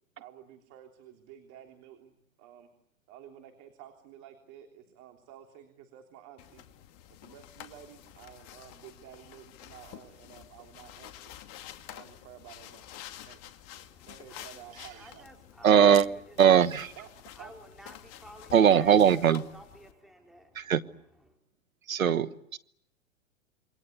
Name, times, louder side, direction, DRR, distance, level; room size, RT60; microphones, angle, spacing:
voice 1, 0.2-2.7 3.1-6.6 7.2-11.3 11.8-12.9 13.2-13.4 14.1-15.3 17.0-17.1 17.4-17.5, right 10 dB, 40° right, 5 dB, 3.4 m, -52 dB
sound 1, 6.4-19.9, left 12 dB, 40° left, 2.4 m, -49 dB
voice 2, 13.7-16.9 17.3-21.4, equal, ahead, 2 dB, 4.2 m, -52 dB
voice 3, 15.6-16.1 16.4-16.9 18.5-19.4 20.5-20.8 21.9-22.6, right 8 dB, 90° right, 16 dB, 1.2 m, -20 dB
27.5 x 23.5 x 8.1 m, 0.76 s
hypercardioid pair, 120°, 40 cm